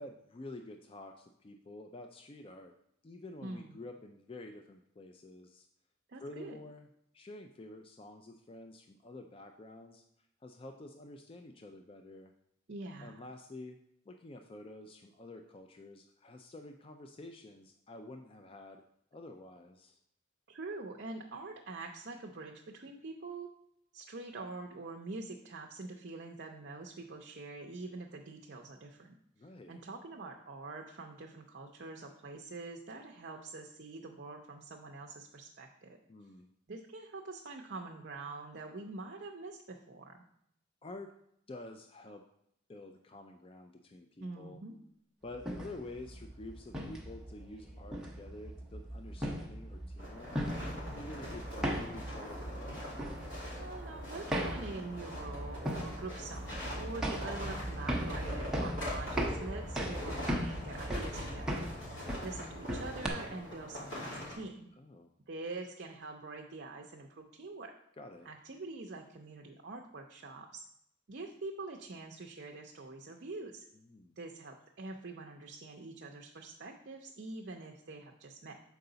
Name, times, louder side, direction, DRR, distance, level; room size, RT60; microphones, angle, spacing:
voice 1, 0.0-2.7 3.0-5.7 6.2-6.9 7.1-10.0 10.4-12.3 13.0-13.8 14.1-18.8 19.1-20.0 29.4-29.8 36.1-36.5 40.8-41.1 41.5-42.2 42.7-44.6 45.2-50.3 50.9-52.8 64.8-65.1 68.0-68.3 73.9-74.2, left 2 dB, 30° left, 5 dB, 0.3 m, -49 dB
voice 2, 3.4-3.8 6.1-6.6 12.7-13.3 20.5-23.5 23.9-29.2 29.7-36.0 36.7-40.2 44.2-44.8 53.6-64.7 65.3-67.7 68.2-70.6 71.1-73.7 74.2-78.5, right 3 dB, 55° right, 2 dB, 0.6 m, -45 dB
sound 1, 45.3-63.1, equal, 5° right, 0.7 m, -38 dB
sound 2, 50.0-64.3, left 1 dB, 75° left, 2.9 m, -43 dB
6.7 x 4.7 x 3.9 m, 0.74 s
head